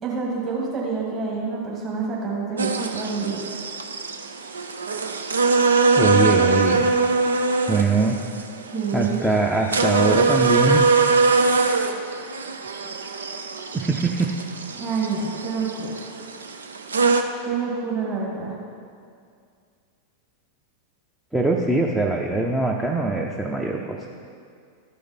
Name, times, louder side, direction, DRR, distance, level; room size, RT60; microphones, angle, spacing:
voice 1, 0.0-3.4 8.7-9.3 14.7-16.1 17.4-18.6, right 5 dB, 25° right, -4 dB, 2.0 m, -27 dB
sound 1, 2.6-17.2, right 4 dB, 70° right, 0.5 m, -22 dB
voice 2, 6.0-6.9 7.7-8.2 8.9-11.1 13.7-14.3 21.3-24.1, right 3 dB, 5° right, -1 dB, 0.6 m, -22 dB
13.0 x 5.0 x 4.2 m, 2.3 s
figure-of-eight pair, 90°, 0 cm